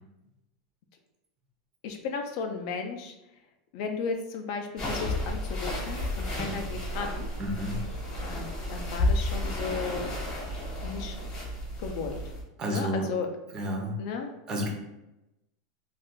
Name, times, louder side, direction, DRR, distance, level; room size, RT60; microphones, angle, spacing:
voice 1, 1.8-3.1 3.7-7.3 8.2-10.1 10.8-11.2 11.8-12.2 12.7-13.3 14.0-14.3, left 5 dB, 55° left, 5 dB, 0.4 m, -35 dB
sound 1, 4.8-12.4, left 1 dB, 25° left, 0.9 m, -32 dB
voice 2, 6.4-6.7 7.4-7.8 12.6-13.1 13.5-14.0 14.5-14.7, equal, 20° right, 1 dB, 0.5 m, -31 dB
2.4 x 2.3 x 3.6 m, 0.94 s
supercardioid pair, 160°, 3 cm